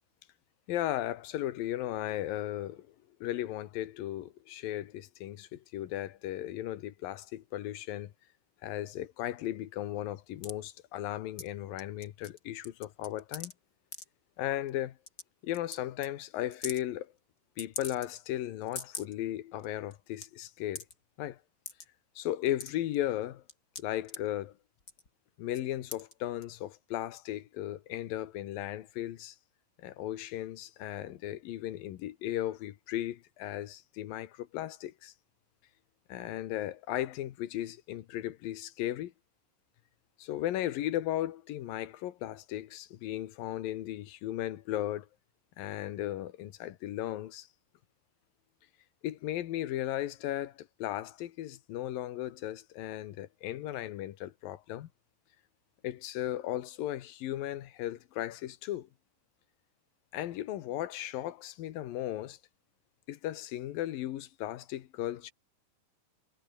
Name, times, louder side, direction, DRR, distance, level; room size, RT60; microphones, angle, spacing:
voice 1, 0.7-2.9 3.2-8.1 8.6-13.5 14.4-14.9 15.4-17.1 17.6-20.8 21.2-21.4 22.2-23.4 23.8-24.5 25.4-29.4 29.8-35.1 36.1-39.1 40.2-45.1 45.6-47.5 49.0-54.9 55.8-58.9 60.1-62.4 63.1-65.3, left 13 dB, 85° left, 3.1 m, -36 dB
sound 1, 10.4-10.6 11.4-11.5 11.8-12.4 12.6-13.5 13.9-14.1 14.7-14.8 15.1-15.2 15.5-15.8 16.0-16.1 16.5-16.8 17.6-18.3 18.6-19.1 19.6-19.7 19.9-20.3 20.8-20.9 21.7-21.9 22.3-23.0 23.5-24.2 24.8-25.1 25.5-25.6 25.9-26.1 26.4-26.5, left 3 dB, 25° left, 3.8 m, -41 dB
omnidirectional pair, 3.9 m